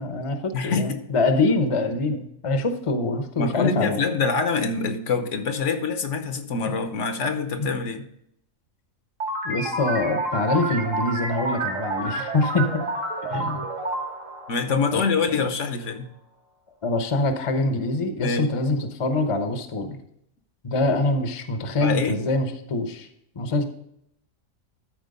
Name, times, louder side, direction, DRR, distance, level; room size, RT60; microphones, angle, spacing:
voice 1, 0.0-4.0 7.6-7.7 9.4-12.9 13.3-13.7 14.9-15.0 15.3-15.5 16.8-20.0 20.6-23.1 23.4-23.6, left 2 dB, 30° left, 7 dB, 0.7 m, -24 dB
voice 2, 0.5-1.0 3.4-8.0 14.5-16.1 18.2-18.5 21.8-22.2, left 4 dB, 65° left, 8 dB, 1.1 m, -25 dB
sound 1, 9.2-15.4, right 2 dB, 65° right, 2.1 m, -29 dB
12.5 x 4.5 x 5.3 m, 0.74 s
omnidirectional pair, 1.4 m